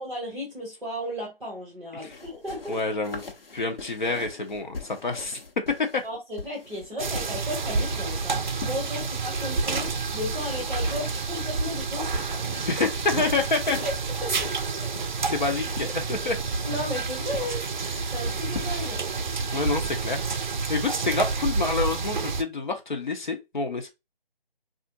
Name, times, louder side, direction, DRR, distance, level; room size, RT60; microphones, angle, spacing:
voice 1, 0.0-2.8 6.0-12.8 13.8-14.6 16.6-17.6 18.1-19.0, left 1 dB, ahead, 0.7 m, -35 dB
sound 1, 2.1-9.9 10.6-11.7 12.1-19.5, left 4 dB, 75° left, 1.1 m, -43 dB
voice 2, 2.7-3.2 3.5-5.4 5.8-6.0 12.6-13.8 15.3-16.4 19.5-20.2 20.7-23.9, left 3 dB, 55° left, 0.8 m, -27 dB
sound 2, 7.0-22.4, right 4 dB, 55° right, 0.5 m, -29 dB
3.4 x 2.5 x 2.6 m
figure-of-eight pair, 165°, 29 cm